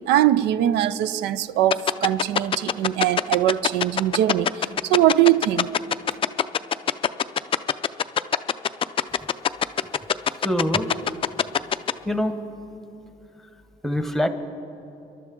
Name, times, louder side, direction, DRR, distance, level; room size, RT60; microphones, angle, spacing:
voice 1, 0.1-4.5 4.8-5.7, right 12 dB, 85° right, 0.4 m, -21 dB
sound 1, 1.7-11.9, left 8 dB, 30° left, 0.4 m, -21 dB
voice 2, 10.4-10.9 12.1-12.3 13.8-14.3, equal, ahead, 1.0 m, -23 dB
26.5 x 12.0 x 3.7 m
cardioid pair, 110°, 17 cm